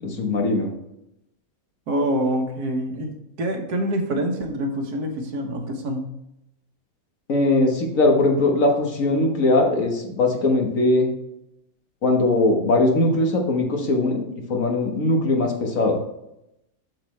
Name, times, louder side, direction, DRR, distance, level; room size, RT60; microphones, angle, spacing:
voice 1, 0.0-0.7 7.3-11.1 12.0-14.2 14.5-16.0, left 2 dB, 60° left, 1 dB, 1.7 m, -20 dB
voice 2, 1.9-6.1, right 1 dB, 85° right, 3 dB, 1.7 m, -26 dB
7.7 x 6.9 x 3.2 m, 0.85 s
omnidirectional pair, 1.6 m